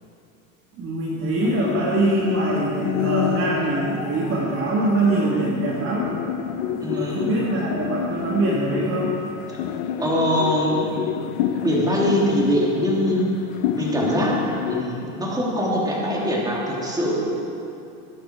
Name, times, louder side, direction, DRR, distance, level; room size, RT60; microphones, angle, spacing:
voice 1, 0.8-6.1 6.7-9.2, right 2 dB, 30° right, -4 dB, 1.8 m, -23 dB
sound 1, 1.4-14.8, left 9 dB, 65° left, 1.1 m, -28 dB
voice 2, 6.8-7.3 10.0-11.1 11.6-13.3 13.7-17.3, equal, 10° right, -4 dB, 3.1 m, -23 dB
21.0 x 10.5 x 4.7 m, 2.7 s
supercardioid pair, 130°, 42 cm